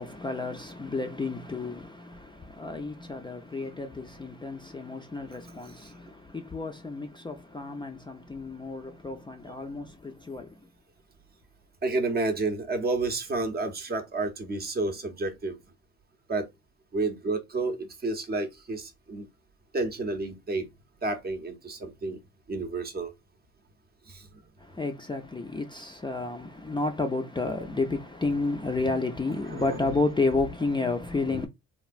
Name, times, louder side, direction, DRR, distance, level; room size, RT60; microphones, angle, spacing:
voice 1, 0.0-10.6 24.6-31.5, left 3 dB, 15° left, 0.4 m, -31 dB
voice 2, 11.8-15.6 16.3-16.5 16.9-19.3 19.7-20.7 21.0-22.2 22.5-23.1 24.1-24.3 29.5-30.0 31.3-31.5, right 3 dB, 30° right, 0.7 m, -30 dB
3.2 x 2.3 x 2.4 m
cardioid pair, 90°, 30 cm